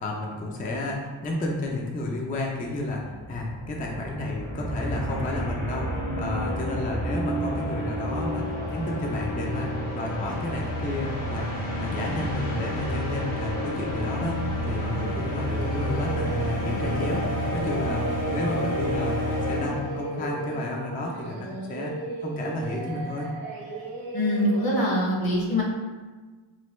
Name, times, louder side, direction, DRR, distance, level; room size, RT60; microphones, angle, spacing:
voice 1, 0.0-21.9 22.2-23.3, left 2 dB, 20° left, -1 dB, 0.3 m, -32 dB
sound 1, 2.7-20.2, equal, 85° left, 1.1 m, -29 dB
Singing, 15.4-24.9, right 2 dB, 80° right, 0.7 m, -37 dB
voice 2, 24.1-25.6, equal, 50° left, -2 dB, 0.8 m, -23 dB
3.2 x 2.1 x 3.0 m, 1.3 s
wide cardioid pair, 95°, 48 cm